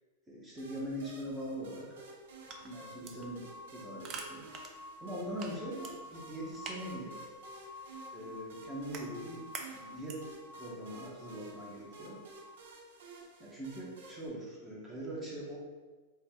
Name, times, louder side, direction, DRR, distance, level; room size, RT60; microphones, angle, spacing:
voice 1, 0.3-2.0 2.6-4.4 5.0-7.1 7.6-7.8 8.1-12.2 13.4-15.6, equal, 10° right, -6 dB, 0.8 m, -42 dB
sound 1, 0.6-14.3, right 3 dB, 75° right, 0.7 m, -53 dB
sound 2, 2.2-10.4, right 4 dB, 30° right, 0.4 m, -49 dB
sound 3, 2.5-12.6, left 2 dB, 40° left, 0.5 m, -51 dB
4.5 x 2.0 x 3.5 m, 1.3 s
supercardioid pair, 150°, 0 cm